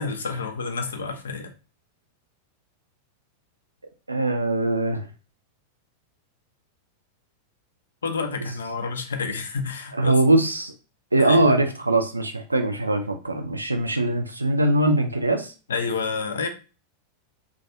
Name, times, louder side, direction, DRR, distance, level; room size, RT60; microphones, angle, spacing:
voice 1, 0.0-1.5 8.0-10.1 11.2-11.6 15.7-16.5, left 4 dB, 65° left, 7 dB, 0.4 m, -29 dB
voice 2, 4.1-5.1 9.9-10.7 11.1-15.5, right 2 dB, 80° right, 7 dB, 0.4 m, -21 dB
2.3 x 2.2 x 2.8 m, 0.34 s
figure-of-eight pair, 90°, 0 cm